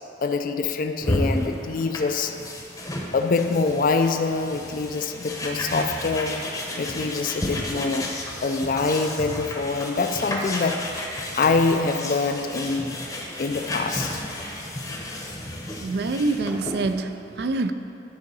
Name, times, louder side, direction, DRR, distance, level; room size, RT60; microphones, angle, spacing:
voice 1, 0.2-2.4 3.1-6.4 6.8-8.1 8.4-10.9 11.3-13.0 13.4-14.1, left 4 dB, 45° left, 7 dB, 0.4 m, -25 dB
sound 1, 1.0-16.9, left 1 dB, 20° left, 0.8 m, -32 dB
voice 2, 15.8-17.7, right 3 dB, 60° right, 9 dB, 0.4 m, -26 dB
11.0 x 3.8 x 5.4 m, 2.7 s
head